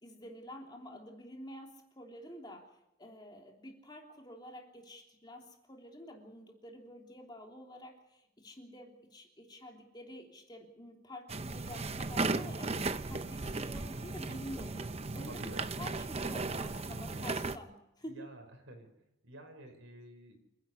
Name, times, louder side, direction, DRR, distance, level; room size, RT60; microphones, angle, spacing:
voice 1, 0.0-2.7 3.0-14.9 15.1-18.3, equal, 20° left, 1 dB, 3.2 m, -49 dB
sound 1, 11.3-17.6, right 3 dB, 30° right, 0.7 m, -36 dB
voice 2, 15.2-15.7 18.0-20.4, right 1 dB, 65° right, 6 dB, 5.2 m, -51 dB
28.0 x 11.0 x 9.8 m, 0.86 s
head